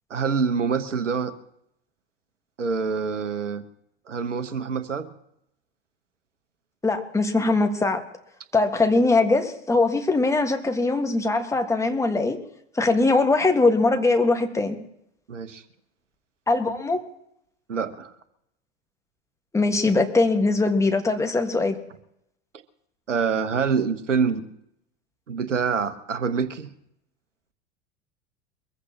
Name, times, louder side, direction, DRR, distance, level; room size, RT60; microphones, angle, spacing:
voice 1, 0.1-1.3 2.6-3.6 4.1-5.1 15.3-15.6 17.7-18.1 23.1-24.4 25.3-26.7, right 5 dB, 75° right, 12 dB, 1.2 m, -26 dB
voice 2, 6.8-8.0 8.5-12.4 12.8-14.8 16.5-17.0 19.5-21.8, left 3 dB, 10° left, 5 dB, 1.7 m, -21 dB
23.5 x 14.5 x 3.0 m, 0.77 s
figure-of-eight pair, 85°, 37 cm